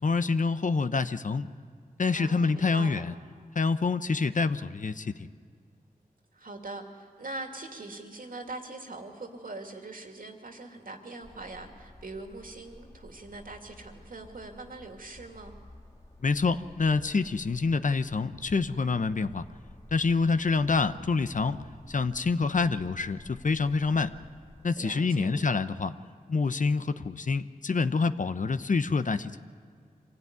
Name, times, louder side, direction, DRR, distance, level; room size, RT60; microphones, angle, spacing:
voice 1, 0.0-1.5 2.0-3.1 3.6-5.1 16.2-19.4 19.9-21.6 21.9-24.1 24.6-25.9 26.3-29.3, left 4 dB, 55° left, 11 dB, 0.8 m, -27 dB
voice 2, 2.1-3.0 6.3-15.5 24.8-25.5, right 2 dB, 65° right, 3 dB, 2.5 m, -42 dB
sound 1, 11.2-24.7, left 1 dB, 20° left, 2.1 m, -52 dB
25.0 x 17.0 x 9.5 m, 2.1 s
wide cardioid pair, 75°, 15 cm